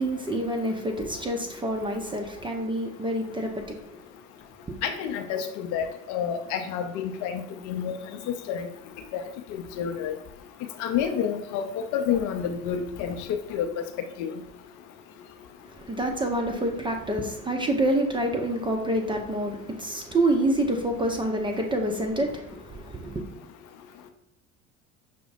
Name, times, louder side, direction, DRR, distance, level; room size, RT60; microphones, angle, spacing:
voice 1, 0.0-3.8 15.7-23.2, right 1 dB, 15° right, 3 dB, 0.4 m, -27 dB
voice 2, 4.8-7.9 8.3-8.7 9.5-10.1 10.8-11.7 11.9-13.2 13.5-13.7 14.2-14.3, left 8 dB, 50° left, 6 dB, 0.5 m, -29 dB
5.7 x 2.1 x 2.5 m, 0.77 s
figure-of-eight pair, 65°, 40 cm